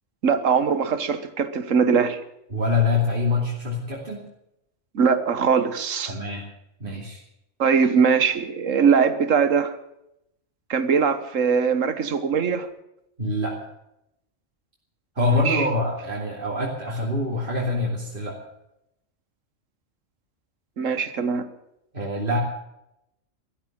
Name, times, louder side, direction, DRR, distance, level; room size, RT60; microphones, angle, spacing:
voice 1, 0.2-2.2 4.9-6.1 7.6-9.8 10.7-12.7 15.3-15.7 20.8-21.5, right 6 dB, 90° right, 1.6 m, -21 dB
voice 2, 2.5-4.3 6.1-6.4 6.8-7.2 13.2-13.5 15.1-18.4 21.9-22.4, left 2 dB, 45° right, 3.1 m, -25 dB
14.0 x 13.5 x 7.6 m
omnidirectional pair, 1.3 m